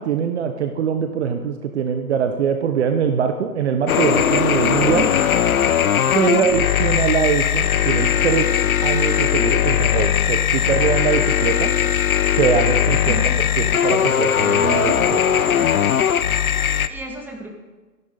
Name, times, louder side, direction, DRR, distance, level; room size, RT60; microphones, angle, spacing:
voice 1, 0.0-5.1 6.1-8.5 8.8-11.7 12.4-13.2 13.6-15.3, right 7 dB, 45° right, 7 dB, 1.2 m, -22 dB
sound 1, 3.9-16.9, left 9 dB, 60° left, 0.9 m, -19 dB
voice 2, 4.9-5.2 6.3-6.5 13.0-13.4 16.9-17.5, right 4 dB, 5° right, 1 dB, 2.1 m, -32 dB
27.5 x 11.0 x 4.0 m, 1.3 s
figure-of-eight pair, 130°, 48 cm